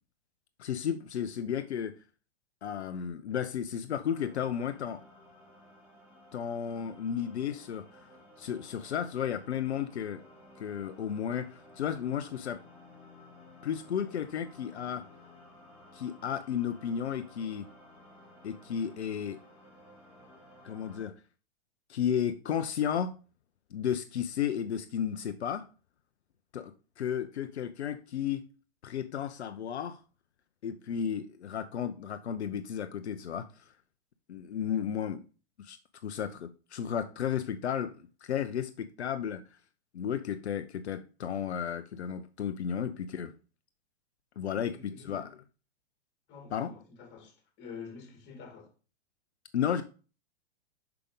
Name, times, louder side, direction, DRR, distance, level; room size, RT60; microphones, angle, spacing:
voice 1, 0.6-2.0 2.6-5.0 6.3-8.1 8.4-10.2 10.6-12.6 13.6-15.1 15.9-17.7 18.4-19.4 20.6-21.1 21.9-23.1 23.7-25.7 26.5-28.4 28.8-30.0 30.6-33.6 34.3-35.2 35.6-35.8 36.0-39.4 39.9-43.3 44.4-45.3 46.5-46.7 49.5-49.8, left 8 dB, 80° left, 0.6 m, -33 dB
sound 1, 4.1-21.0, left 1 dB, 5° right, 2.5 m, -55 dB
voice 2, 44.5-45.3 46.3-48.7, left 5 dB, 30° left, 1.9 m, -48 dB
5.8 x 4.9 x 3.6 m
hypercardioid pair, 110°, 33 cm